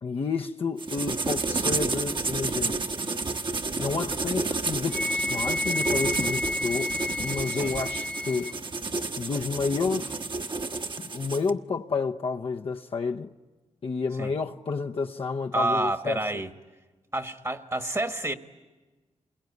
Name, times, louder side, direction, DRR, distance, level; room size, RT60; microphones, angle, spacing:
voice 1, 0.0-2.8 3.7-6.9 7.2-8.5 9.2-10.2 11.0-13.3 13.8-16.4, left 4 dB, 55° left, 0.8 m, -30 dB
sound 1, 0.8-11.5, right 3 dB, 45° right, 1.3 m, -30 dB
Wind instrument woodwind instrument, 4.9-8.6, left 2 dB, 5° left, 0.9 m, -31 dB
voice 2, 15.5-16.5 17.1-18.3, right 2 dB, 25° right, 1.4 m, -29 dB
28.0 x 22.0 x 9.5 m
cardioid pair, 70°, 12 cm